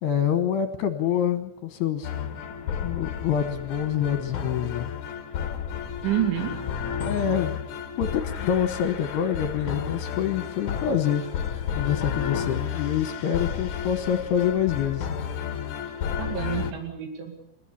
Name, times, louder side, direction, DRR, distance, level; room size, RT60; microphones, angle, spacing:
voice 1, 0.0-2.1 2.8-4.9 7.0-7.6 8.0-11.2 11.8-15.1, left 9 dB, 70° left, 8 dB, 3.1 m, -26 dB
sound 1, 2.0-16.7, left 8 dB, 55° left, 2.5 m, -32 dB
voice 2, 6.0-6.6 16.2-17.4, right 11 dB, 80° right, 3 dB, 4.7 m, -28 dB
30.0 x 15.0 x 8.7 m, 0.80 s
omnidirectional pair, 5.3 m